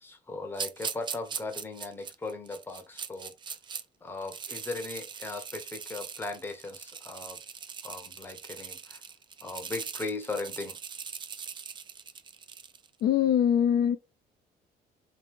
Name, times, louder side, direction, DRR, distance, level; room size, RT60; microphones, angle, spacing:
voice 1, 0.0-3.3 4.0-7.4 7.8-9.0 9.4-10.8, left 3 dB, 15° left, 0.7 m, -38 dB
sound 1, 0.5-3.8 4.2-12.9, right 6 dB, 30° right, 0.4 m, -41 dB
voice 2, 13.0-14.0, left 9 dB, 65° left, 0.5 m, -23 dB
2.9 x 2.8 x 3.5 m
cardioid pair, 110°, 17 cm